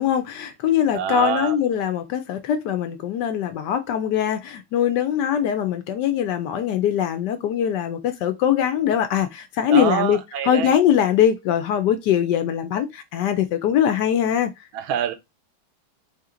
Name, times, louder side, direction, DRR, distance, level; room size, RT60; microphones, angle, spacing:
voice 1, 0.0-10.2 10.4-14.5, left 9 dB, 70° left, 1.1 m, -22 dB
voice 2, 0.9-1.5 9.7-10.7 14.7-15.1, right 8 dB, 90° right, 1.5 m, -25 dB
4.1 x 2.9 x 3.7 m
omnidirectional pair, 2.2 m